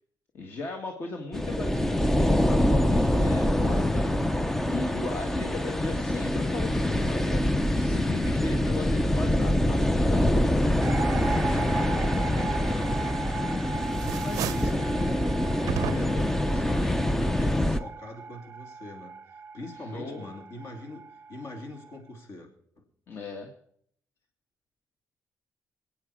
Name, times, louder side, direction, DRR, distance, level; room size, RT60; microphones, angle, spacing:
voice 1, 0.3-4.1 4.7-7.4 7.8-10.5 19.9-20.3 23.1-23.5, left 3 dB, 40° left, 3 dB, 1.6 m, -37 dB
sound 1, 1.3-17.8, left 1 dB, 5° left, 0.5 m, -25 dB
sound 2, 10.8-22.0, right 5 dB, 35° right, 0.6 m, -38 dB
voice 2, 11.5-13.4 13.8-22.5 22.8-22.9, left 1 dB, 55° left, 3 dB, 3.2 m, -43 dB
sound 3, 13.1-13.5 13.9-14.8 15.7-16.3, right 12 dB, 85° right, 0.6 m, -34 dB
25.5 x 9.0 x 4.9 m, 0.68 s
cardioid pair, 170°, 6 cm